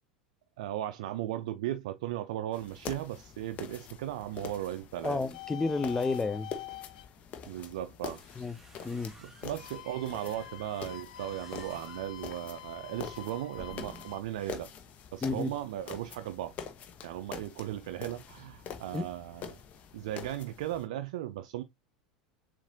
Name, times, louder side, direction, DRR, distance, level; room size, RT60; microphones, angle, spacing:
voice 1, 0.6-5.2 7.5-8.2 9.2-14.7 15.1-16.5 17.0-19.6 19.9-21.6, right 13 dB, 60° right, 0.4 m, -37 dB
sound 1, 2.5-20.9, left 7 dB, 35° left, 0.9 m, -46 dB
voice 2, 5.0-6.5 8.4-8.6 8.8-9.1 15.2-15.5 18.9-19.0, left 3 dB, 10° left, 0.5 m, -31 dB
sound 2, 5.3-7.1 9.5-14.2, left 14 dB, 65° left, 0.4 m, -46 dB
sound 3, 7.8-14.4, right 1 dB, 10° right, 1.8 m, -55 dB
7.1 x 2.5 x 2.7 m
figure-of-eight pair, 80°, 4 cm